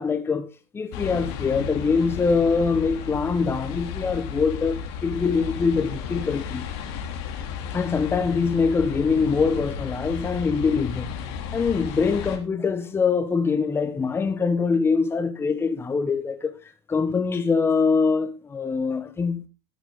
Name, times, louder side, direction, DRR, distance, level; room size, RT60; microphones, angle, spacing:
voice 1, 0.0-6.7 7.7-11.1 11.5-16.5 16.9-19.4, left 5 dB, 15° left, 1.1 m, -23 dB
sound 1, 0.9-12.4, left 7 dB, 60° left, 2.6 m, -33 dB
13.0 x 9.1 x 3.7 m
hypercardioid pair, 105°, 14 cm